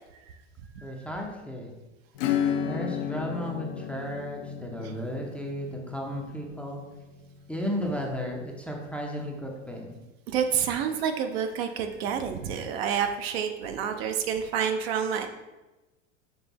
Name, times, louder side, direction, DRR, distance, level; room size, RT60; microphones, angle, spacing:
voice 1, 0.8-1.7 2.6-6.8 7.5-10.0 15.2-15.3, equal, 5° left, 0 dB, 0.5 m, -34 dB
Acoustic guitar / Strum, 2.2-8.4, left 8 dB, 50° left, 0.5 m, -33 dB
voice 2, 10.3-15.3, right 7 dB, 55° right, 6 dB, 0.6 m, -28 dB
5.4 x 3.3 x 3.0 m, 1.1 s
figure-of-eight pair, 85°, 37 cm